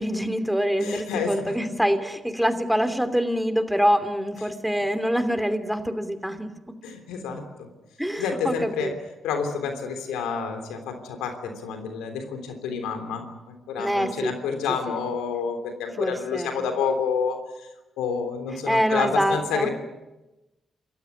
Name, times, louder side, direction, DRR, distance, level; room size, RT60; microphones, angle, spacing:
voice 1, 0.0-6.5 8.0-8.9 13.8-14.3 16.0-16.6 18.7-19.7, equal, ahead, 9 dB, 3.0 m, -25 dB
voice 2, 0.8-1.5 6.8-7.7 8.2-17.4 18.0-19.7, left 6 dB, 90° left, 7 dB, 3.3 m, -29 dB
28.0 x 15.5 x 9.9 m, 1.0 s
supercardioid pair, 50°, 0 cm